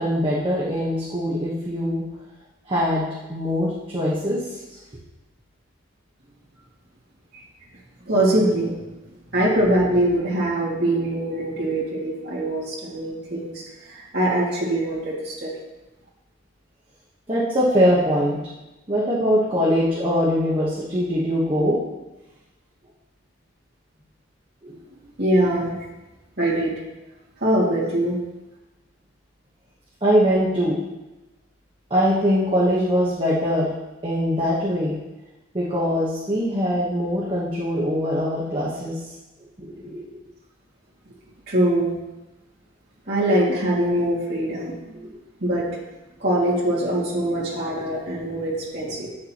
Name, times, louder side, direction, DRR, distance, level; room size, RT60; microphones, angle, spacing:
voice 1, 0.0-2.0 2.7-4.8 17.3-18.4 18.9-21.8 24.6-24.8 30.0-30.8 31.9-33.7 34.0-34.9 35.5-39.0 39.6-40.2 45.0-45.2, equal, 25° right, -6 dB, 1.1 m, -22 dB
voice 2, 8.1-8.7 9.3-15.5 25.2-25.8 26.4-26.7 27.4-28.2 41.5-41.9 43.1-44.7 45.4-45.7 46.2-49.1, right 1 dB, 50° right, -6 dB, 2.2 m, -22 dB
8.9 x 6.7 x 2.9 m, 1.0 s
head